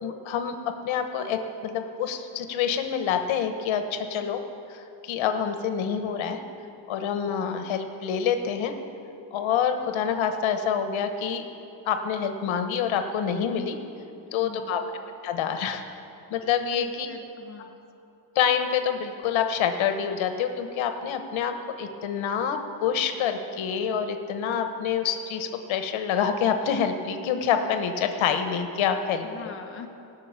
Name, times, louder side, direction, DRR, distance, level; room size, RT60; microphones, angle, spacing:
voice 1, 0.0-4.4 5.0-6.4 6.9-8.7 9.3-11.4 11.8-13.8 14.3-14.8 15.2-15.8 16.3-17.1 18.3-29.5, left 7 dB, 75° left, 7 dB, 1.2 m, -27 dB
voice 2, 14.3-14.9 16.7-17.7 29.2-29.9, left 5 dB, 25° left, 2 dB, 1.1 m, -42 dB
18.0 x 6.5 x 8.9 m, 2.7 s
cardioid pair, 150°, 47 cm